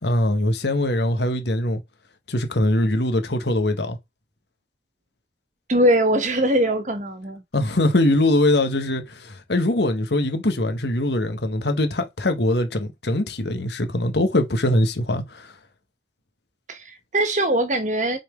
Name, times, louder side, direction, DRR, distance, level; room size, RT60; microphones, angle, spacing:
voice 1, 0.0-1.8 2.3-4.0 7.5-15.5, left 1 dB, 65° left, 1.3 m, -22 dB
voice 2, 5.7-7.4 16.7-18.2, right 1 dB, 40° right, 1.4 m, -21 dB
6.2 x 4.3 x 5.1 m
head